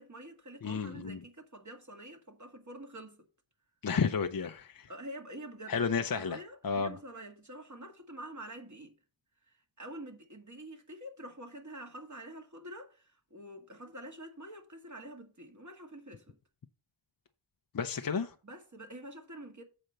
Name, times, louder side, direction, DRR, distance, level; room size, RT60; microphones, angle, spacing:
voice 1, 0.0-3.2 4.9-8.9 9.5-16.4 18.4-19.6, right 1 dB, 35° right, 2.0 m, -47 dB
voice 2, 0.6-1.2 3.8-4.9 5.7-6.4 6.6-7.0 17.7-18.3, left 6 dB, 45° left, 0.6 m, -32 dB
7.9 x 4.4 x 6.5 m
wide cardioid pair, 65°, 49 cm